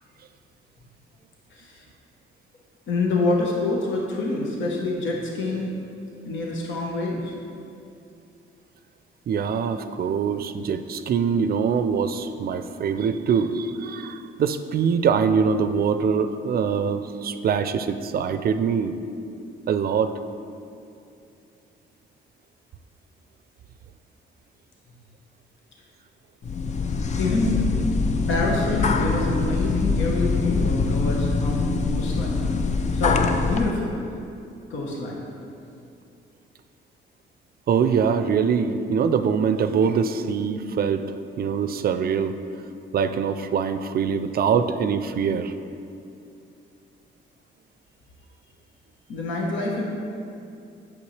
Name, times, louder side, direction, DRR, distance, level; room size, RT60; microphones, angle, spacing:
voice 1, 1.5-1.8 2.9-5.7 6.2-7.3 27.2-27.6 28.3-32.4 32.9-33.9 34.7-35.2 49.1-49.8, left 2 dB, 70° left, -2 dB, 1.1 m, -26 dB
voice 2, 9.3-18.9 19.7-20.1 37.7-41.0 41.4-42.3 42.9-45.5, right 6 dB, 50° right, 10 dB, 0.4 m, -23 dB
sound 1, 26.4-33.7, left 4 dB, 35° left, 0.5 m, -24 dB
8.4 x 6.6 x 3.3 m, 2.6 s
cardioid pair, 90°, 20 cm